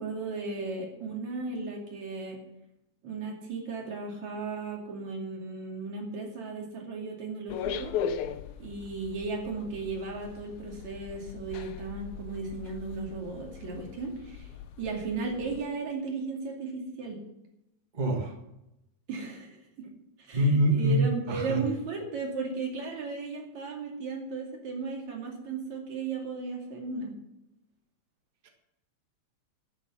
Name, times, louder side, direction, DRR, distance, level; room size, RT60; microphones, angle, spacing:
voice 1, 0.0-2.4 3.0-7.9 8.6-14.5 14.8-17.2 19.1-19.9 20.2-27.1, right 4 dB, 70° right, 0 dB, 3.8 m, -35 dB
sound 1, 7.5-15.6, left 7 dB, 80° left, 2.2 m, -39 dB
voice 2, 17.9-18.3 20.3-21.0 21.3-21.6 28.4-28.5, equal, 25° right, 3 dB, 1.1 m, -25 dB
12.5 x 7.3 x 7.3 m, 0.88 s
omnidirectional pair, 3.3 m